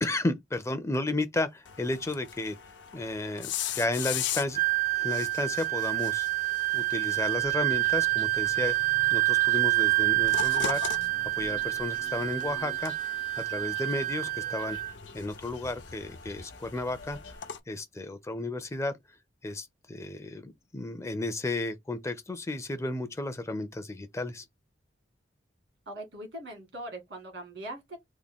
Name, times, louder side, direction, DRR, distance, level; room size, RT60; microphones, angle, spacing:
voice 1, 0.0-2.6 2.9-4.6 5.0-6.3 6.7-11.0 11.4-12.9 13.4-14.8 15.1-17.2 17.7-18.9 19.4-24.5, left 2 dB, 15° left, 0.4 m, -33 dB
sound 1, 1.7-17.6, left 9 dB, 70° left, 0.5 m, -41 dB
Wind instrument woodwind instrument, 4.5-14.9, right 22 dB, 50° right, 0.6 m, -27 dB
sound 2, 7.1-17.4, left 2 dB, 90° left, 0.9 m, -49 dB
voice 2, 25.9-28.0, right 1 dB, 75° right, 1.7 m, -41 dB
3.5 x 2.1 x 3.5 m
head